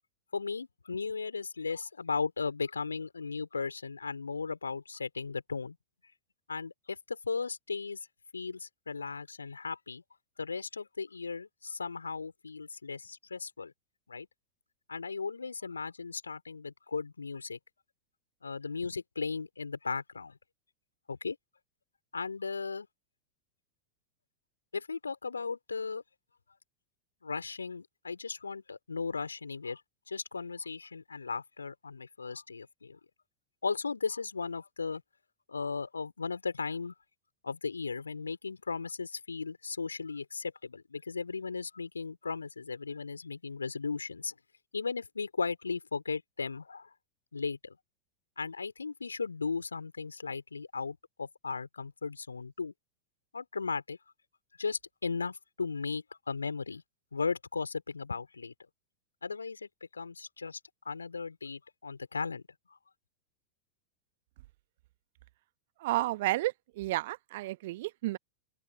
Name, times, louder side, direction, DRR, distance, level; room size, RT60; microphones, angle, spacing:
voice 1, 0.3-5.8 6.5-8.0 8.3-10.0 10.4-13.7 14.1-14.3 14.9-17.6 18.4-20.4 21.1-21.4 22.1-22.9 24.7-26.0 27.2-29.8 30.1-33.0 33.6-35.0 35.5-36.9 37.4-44.3 44.7-46.9 47.3-47.8 48.4-52.7 53.3-54.0 54.6-56.8 57.1-58.5 59.2-60.6 60.8-62.4, left 4 dB, 75° left, 4.2 m, -36 dB
voice 2, 65.8-68.2, right 17 dB, 55° right, 1.1 m, -32 dB
open air
figure-of-eight pair, 90°, 0 cm